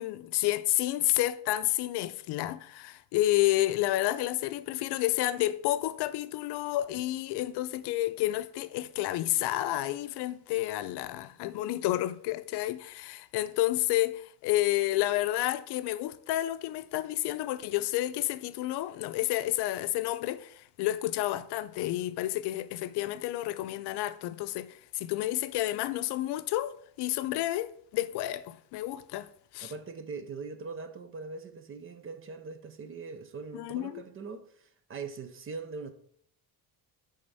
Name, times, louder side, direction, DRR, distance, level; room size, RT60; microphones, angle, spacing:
voice 1, 0.0-29.3 29.5-29.7 33.5-34.0, left 15 dB, 75° left, 0.5 m, -30 dB
voice 2, 29.6-35.9, right 4 dB, 35° right, 0.6 m, -41 dB
8.7 x 3.6 x 5.4 m
cardioid pair, 165°, 40 cm